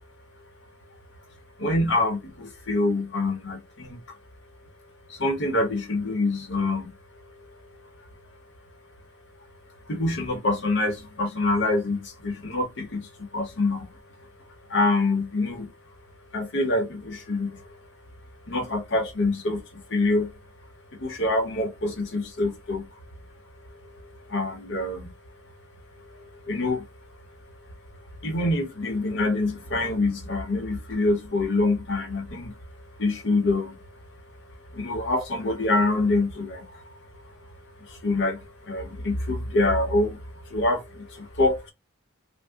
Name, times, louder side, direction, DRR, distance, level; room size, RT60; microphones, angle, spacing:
voice 1, 1.6-3.9 5.2-6.9 9.9-12.0 12.2-13.0 13.3-13.8 14.7-15.7 16.3-17.5 18.5-19.6 19.9-20.3 21.0-22.8 24.3-25.1 26.5-26.8 28.2-32.5 33.0-33.7 34.8-36.6 38.0-38.4 38.7-40.2 40.5-40.8 41.4-41.7, left 2 dB, 55° left, 0.9 m, -25 dB
2.7 x 2.1 x 3.5 m
head